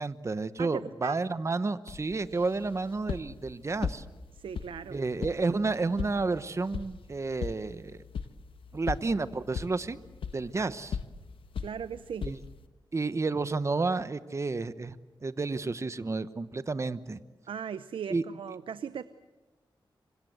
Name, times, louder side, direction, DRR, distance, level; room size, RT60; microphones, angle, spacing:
voice 1, 0.0-4.0 4.9-8.0 8.7-10.0 10.3-11.0 12.2-12.4 12.9-15.0 15.2-17.2 18.1-18.2, right 3 dB, 35° right, 13 dB, 1.0 m, -31 dB
voice 2, 0.6-1.2 4.3-5.0 10.6-10.7 11.6-12.3 17.5-19.0, right 7 dB, 85° right, 13 dB, 0.8 m, -38 dB
sound 1, 1.9-12.7, left 6 dB, 90° left, 1.2 m, -40 dB
26.5 x 24.5 x 7.9 m, 1.2 s
wide cardioid pair, 90°, 9 cm